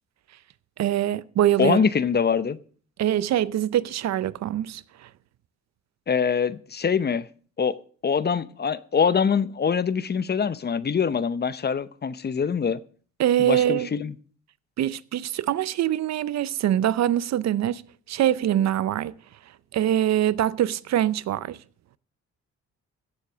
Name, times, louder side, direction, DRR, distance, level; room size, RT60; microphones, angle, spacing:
voice 1, 0.8-1.8 3.0-5.1 13.2-13.9 14.8-17.8 18.1-19.1 19.7-21.6, right 11 dB, 60° right, 0.6 m, -24 dB
voice 2, 1.6-2.6 6.1-7.3 7.6-7.8 8.0-12.8 13.4-14.1, left 6 dB, 35° left, 0.8 m, -24 dB
16.0 x 7.4 x 6.1 m
cardioid pair, 90°, 30 cm